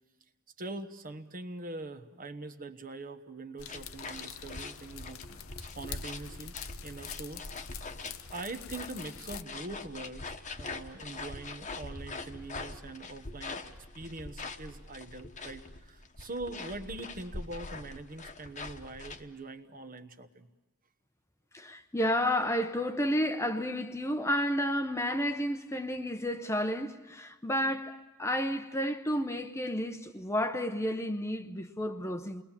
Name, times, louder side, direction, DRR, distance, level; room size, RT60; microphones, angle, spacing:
voice 1, 0.6-5.2 5.8-6.6 6.8-7.4 8.3-13.6 13.9-20.5, right 2 dB, 40° right, 1.1 m, -43 dB
sound 1, 3.6-9.4, left 11 dB, 65° left, 0.8 m, -46 dB
sound 2, 3.7-19.2, left 3 dB, 35° left, 1.2 m, -43 dB
voice 2, 21.5-32.4, equal, 15° left, 0.8 m, -31 dB
29.0 x 21.0 x 7.4 m
head